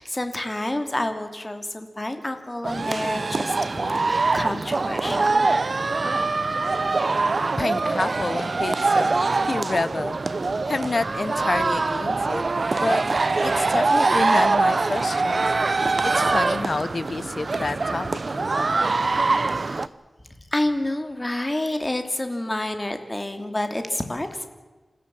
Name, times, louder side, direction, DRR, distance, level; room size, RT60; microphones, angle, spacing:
voice 1, 0.0-5.5 19.5-19.9 20.5-24.5, left 1 dB, 25° left, 7 dB, 2.6 m, -29 dB
sound 1, 2.6-19.9, right 3 dB, 55° right, 0.7 m, -23 dB
voice 2, 7.6-9.2 9.4-10.2 10.7-12.5 12.7-13.0 13.4-15.5 16.0-18.8, left 3 dB, 50° left, 17 dB, 0.7 m, -28 dB
28.0 x 15.5 x 7.6 m, 1.2 s
wide cardioid pair, 80°, 0 cm